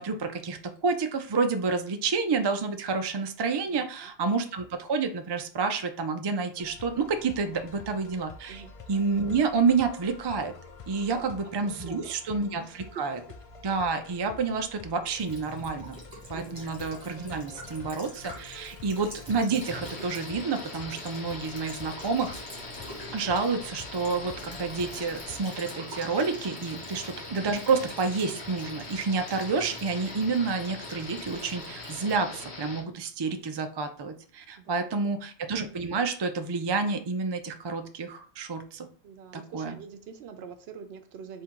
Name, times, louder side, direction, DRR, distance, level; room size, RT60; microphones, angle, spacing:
voice 1, 0.0-10.5 10.9-13.2 13.6-16.0 16.3-22.3 23.1-38.9 39.3-39.8, right 4 dB, 45° right, 7 dB, 0.3 m, -29 dB
voice 2, 3.7-4.1 8.5-8.7 11.0-12.0 12.6-13.0 16.3-16.6 26.7-27.0 34.6-35.1 39.0-41.4, right 7 dB, 75° right, 8 dB, 0.8 m, -45 dB
sound 1, 6.6-25.5, left 4 dB, 50° left, 0.4 m, -48 dB
Child speech kid speaking / Bird vocalization bird call bird song / Stream, 15.2-32.2, right 1 dB, 25° right, 1.4 m, -46 dB
sound 2, 19.6-32.8, left 3 dB, 85° left, 1.2 m, -42 dB
3.7 x 2.7 x 4.4 m, 0.43 s
omnidirectional pair, 1.1 m